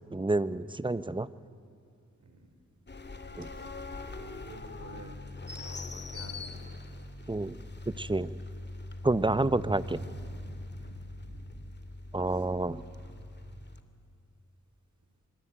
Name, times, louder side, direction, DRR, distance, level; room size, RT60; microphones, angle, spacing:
voice 1, 0.1-1.3 3.4-3.5 7.3-7.6 7.9-8.3 9.0-10.0 12.1-12.8, right 2 dB, 15° right, 15 dB, 1.0 m, -29 dB
sound 1, 2.9-13.8, left 2 dB, 35° left, 2.4 m, -42 dB
voice 2, 3.6-5.2 5.5-6.7 7.0-7.1 8.4-8.5 9.6-11.6 12.2-13.5, right 2 dB, 65° right, 6 dB, 4.6 m, -50 dB
27.0 x 24.0 x 8.9 m, 2.5 s
cardioid pair, 55°, 31 cm